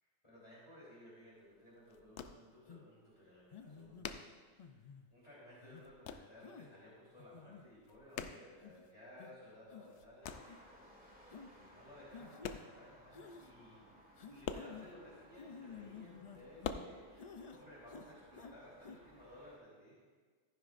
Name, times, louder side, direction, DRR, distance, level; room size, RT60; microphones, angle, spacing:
voice 1, 0.0-14.0 14.3-20.1, left 1 dB, 25° left, -9 dB, 3.4 m, -58 dB
sound 1, 1.2-1.3 1.6-2.8 3.1-3.2 3.4-5.2 5.4-6.4 6.7-7.2 7.5-9.2 9.6-10.6 11.4-11.5 12.0-13.0 13.3-13.4 13.6-13.7 14.0-15.4 15.9-16.7, left 8 dB, 80° left, 0.9 m, -46 dB
sound 2, 2.7-2.9 3.5-4.1 4.6-5.1 5.6-5.9 6.4-6.7 7.2-7.6 8.2-8.3 8.6-8.8 9.2-9.3 9.7-10.1 10.4-10.6 11.3-11.5 12.1-12.6 13.1-13.5 14.2-14.9 15.4-16.9 17.2-17.6 17.9-18.5 18.8-19.0, left 6 dB, 50° left, 0.5 m, -52 dB
sound 3, 10.2-19.6, equal, 5° right, 1.7 m, -62 dB
14.5 x 10.0 x 2.5 m, 1.5 s
omnidirectional pair, 1.2 m